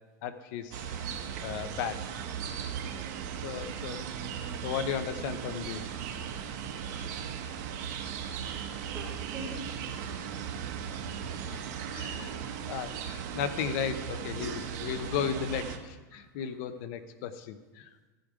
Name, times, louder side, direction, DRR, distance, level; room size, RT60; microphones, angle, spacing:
voice 1, 0.2-1.1 1.4-2.0 3.4-4.1 4.6-5.8 11.9-12.3 12.7-17.9, left 8 dB, 65° left, 11 dB, 0.8 m, -35 dB
sound 1, 0.7-15.8, right 8 dB, 65° right, 1.1 m, -37 dB
voice 2, 3.4-3.9 6.6-7.4 8.5-9.9 11.4-12.3 14.4-15.3 16.1-16.4, right 1 dB, 5° right, -9 dB, 3.0 m, -47 dB
15.5 x 5.2 x 4.8 m, 1.2 s
supercardioid pair, 115°, 10 cm